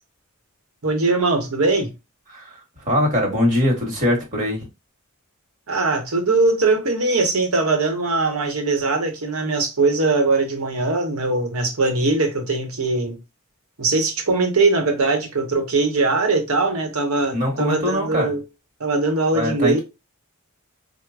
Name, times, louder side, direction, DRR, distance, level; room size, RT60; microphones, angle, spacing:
voice 1, 0.8-1.9 5.7-13.2 13.8-18.4 18.8-19.8, right 3 dB, 90° right, 1.0 m, -21 dB
voice 2, 2.9-4.6 17.3-18.3 19.3-19.8, left 1 dB, 35° right, 1.3 m, -21 dB
4.6 x 2.2 x 2.4 m
head